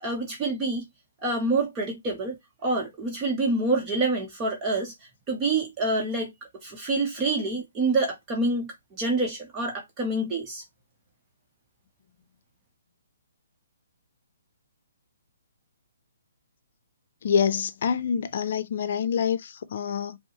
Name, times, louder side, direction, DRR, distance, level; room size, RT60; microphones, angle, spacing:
voice 1, 0.0-0.8 1.2-2.4 2.6-4.9 5.3-6.3 6.6-10.6, right 2 dB, 25° right, 0.9 m, -27 dB
voice 2, 17.2-20.2, left 7 dB, 55° left, 0.5 m, -26 dB
5.2 x 2.1 x 2.9 m
hypercardioid pair, 140°, 0 cm